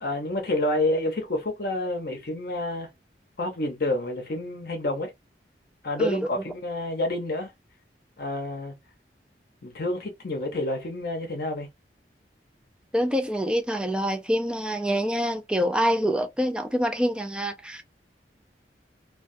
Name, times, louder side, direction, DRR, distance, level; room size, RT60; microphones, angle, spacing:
voice 1, 0.0-2.9 3.4-5.1 5.8-7.5 8.2-8.7 9.6-11.7, left 1 dB, 55° left, 0.6 m, -28 dB
voice 2, 6.0-6.4 12.9-17.8, equal, 5° right, 0.3 m, -26 dB
2.3 x 2.3 x 2.5 m
head